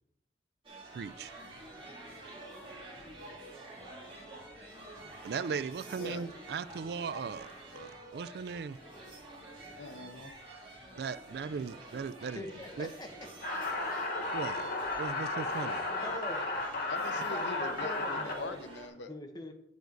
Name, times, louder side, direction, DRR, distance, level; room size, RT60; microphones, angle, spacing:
sound 1, 0.6-18.9, right 1 dB, 30° right, 2.6 m, -49 dB
voice 1, 0.9-1.3 5.2-7.5 7.8-8.8 11.0-12.4 12.8-12.9 14.3-14.6 15.0-15.9, right 5 dB, 60° right, 0.3 m, -38 dB
voice 2, 9.8-10.3 16.9-19.1, left 2 dB, 80° left, 0.8 m, -42 dB
voice 3, 12.3-13.1 16.0-16.4 17.1-18.6 19.1-19.5, left 2 dB, 25° left, 1.1 m, -43 dB
sound 2, 13.4-18.3, left 2 dB, 55° left, 1.3 m, -34 dB
9.1 x 7.1 x 4.0 m
head